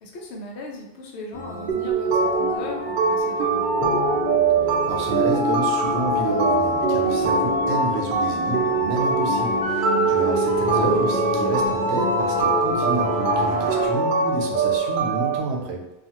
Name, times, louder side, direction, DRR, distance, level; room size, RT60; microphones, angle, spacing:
voice 1, 0.0-3.9 9.9-10.1, left 1 dB, 90° left, 1 dB, 0.9 m, -38 dB
sound 1, 1.3-13.9, left 2 dB, 45° left, 0.4 m, -29 dB
sound 2, 1.7-15.4, right 3 dB, 60° right, 0.6 m, -23 dB
voice 2, 4.7-15.9, right 2 dB, 85° right, 1 dB, 0.8 m, -29 dB
2.4 x 2.4 x 2.8 m, 0.90 s
omnidirectional pair, 1.1 m